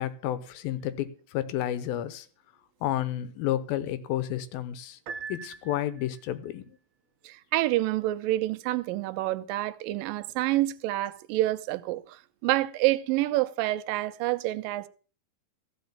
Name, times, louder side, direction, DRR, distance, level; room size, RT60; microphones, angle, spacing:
voice 1, 0.0-2.3 2.8-5.0 5.3-6.8, left 12 dB, 85° left, 2.8 m, -31 dB
Piano, 5.1-6.3, right 5 dB, 65° right, 2.0 m, -41 dB
voice 2, 7.2-14.9, right 16 dB, 80° right, 2.3 m, -28 dB
15.0 x 5.1 x 8.6 m
omnidirectional pair, 4.1 m